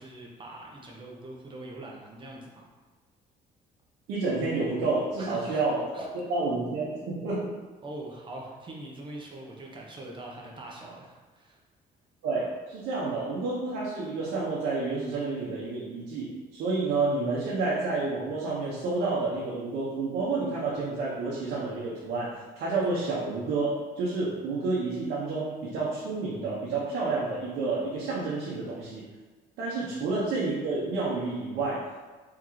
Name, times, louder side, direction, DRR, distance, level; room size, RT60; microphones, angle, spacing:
voice 1, 0.0-2.7 5.2-5.7 5.9-6.1 7.8-11.6 29.8-30.0, right 2 dB, 30° right, -2 dB, 0.9 m, -42 dB
voice 2, 4.1-5.8 6.1-7.6 12.2-29.0 29.6-31.8, right 3 dB, 85° right, -6 dB, 1.0 m, -29 dB
3.8 x 3.6 x 3.1 m, 1.3 s
cardioid pair, 110°, 17 cm